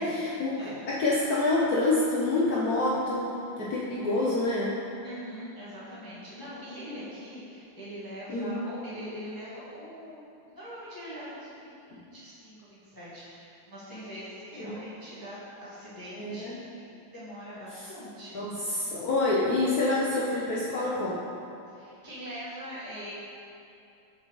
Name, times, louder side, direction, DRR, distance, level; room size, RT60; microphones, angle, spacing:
voice 1, 0.0-0.6 0.9-3.3 3.6-4.8 8.3-8.5 11.9-12.0 14.6-14.7 16.2-16.6 17.7-17.9 18.3-21.2, left 2 dB, 65° left, -6 dB, 0.9 m, -27 dB
voice 2, 5.0-18.5 21.7-23.1, equal, 10° left, -11 dB, 1.2 m, -43 dB
7.1 x 6.5 x 3.1 m, 2.7 s
omnidirectional pair, 2.4 m